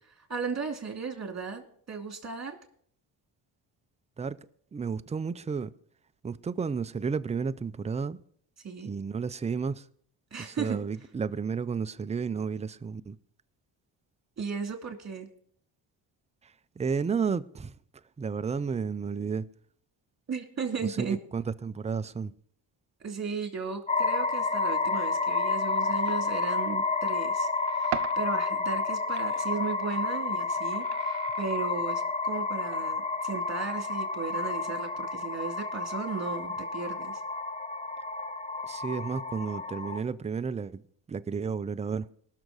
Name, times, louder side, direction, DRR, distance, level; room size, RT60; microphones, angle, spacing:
voice 1, 0.3-2.6 8.6-8.9 10.3-10.8 14.4-15.3 20.3-21.2 23.0-37.1, right 5 dB, 30° right, 2.5 m, -35 dB
voice 2, 4.7-5.7 6.2-8.2 8.8-9.9 10.4-13.2 16.4-17.8 18.2-19.5 20.8-22.3 38.6-40.8 41.1-42.1, right 5 dB, 15° right, 0.3 m, -32 dB
sound 1, 23.9-40.0, left 3 dB, 15° left, 0.7 m, -30 dB
sound 2, 25.7-25.8 26.1-26.3 27.4-28.3 28.6-31.8 32.7-32.8 33.2-33.3 33.5-33.9, right 11 dB, 50° right, 0.8 m, -40 dB
19.5 x 6.6 x 3.9 m
cardioid pair, 75°, 49 cm